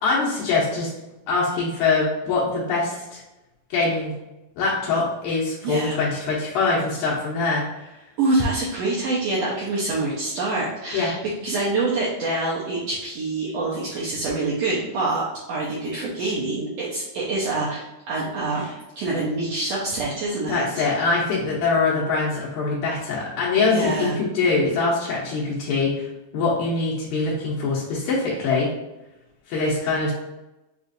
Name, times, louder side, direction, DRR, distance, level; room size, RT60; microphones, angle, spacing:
voice 1, 0.0-0.9 1.3-3.2 3.7-4.1 4.6-7.9 10.9-11.1 20.4-26.1 26.3-28.7 29.5-30.1, left 3 dB, 80° left, -6 dB, 2.2 m, -23 dB
voice 2, 5.6-6.0 8.2-18.7 19.0-20.8 23.7-24.2, right 2 dB, 75° right, -6 dB, 1.6 m, -26 dB
5.7 x 2.4 x 2.6 m, 0.98 s
omnidirectional pair, 3.6 m